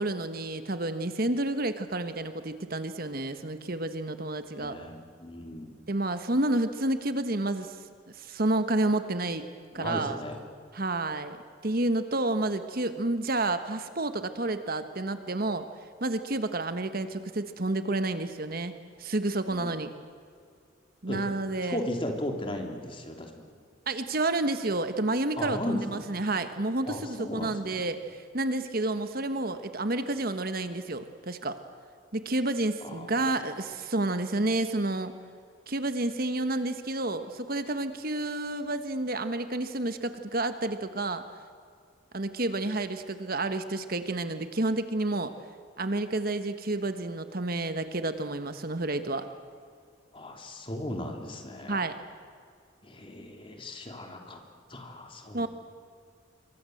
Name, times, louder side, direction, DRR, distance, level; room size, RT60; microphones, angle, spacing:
voice 1, 0.0-4.8 5.9-7.8 8.1-9.4 9.7-10.2 10.7-11.4 11.6-15.6 16.0-18.7 19.0-19.9 21.0-21.8 23.9-31.6 32.1-35.1 35.7-41.2 42.1-45.3 45.8-49.3 51.7-51.9 55.3-55.5, right 2 dB, 50° right, 9 dB, 1.3 m, -30 dB
voice 2, 4.6-5.7 9.7-10.4 19.5-19.7 21.1-21.2 21.7-23.5 25.4-26.0 26.9-27.8 32.8-33.5 50.1-51.8 52.8-54.4 54.7-55.5, left 1 dB, 25° left, 3 dB, 3.1 m, -36 dB
27.0 x 23.5 x 7.9 m, 2.2 s
head